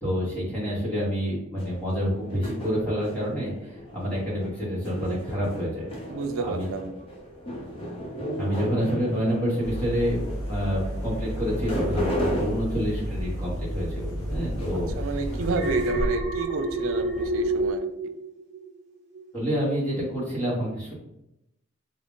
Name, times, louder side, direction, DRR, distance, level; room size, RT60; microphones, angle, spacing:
voice 1, 0.0-5.9 6.3-6.7 8.4-15.3 19.3-20.9, equal, 10° left, -8 dB, 1.0 m, -28 dB
sound 1, 1.6-17.7, equal, 25° left, 0.7 m, -35 dB
voice 2, 6.1-6.9 14.9-17.9, right 4 dB, 80° right, 7 dB, 0.4 m, -31 dB
sound 2, 9.6-15.8, equal, 80° left, 1.1 m, -32 dB
Alarm, 15.4-18.8 19.1-19.5, right 1 dB, 55° right, 0.8 m, -28 dB
3.6 x 2.1 x 3.7 m, 0.86 s
head